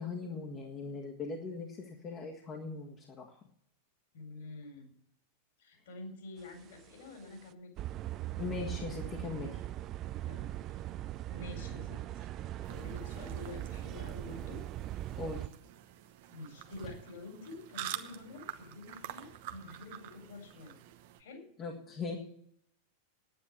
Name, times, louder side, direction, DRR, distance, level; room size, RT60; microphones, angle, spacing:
voice 1, 0.0-3.4 8.4-9.5 15.2-15.5 21.6-22.2, left 4 dB, 30° left, -1 dB, 1.7 m, -40 dB
voice 2, 4.1-4.9 5.6-7.8 10.2-10.5 11.3-12.3 12.6-14.6 16.3-20.8 21.2-21.4, left 3 dB, 60° left, 4 dB, 4.2 m, -48 dB
sound 1, 6.5-6.9 7.3-7.4 7.8-15.5, right 13 dB, 35° right, 0.5 m, -40 dB
sound 2, 12.6-21.2, right 12 dB, 50° right, 1.0 m, -47 dB
9.9 x 9.6 x 8.7 m, 0.70 s
figure-of-eight pair, 90°, 0 cm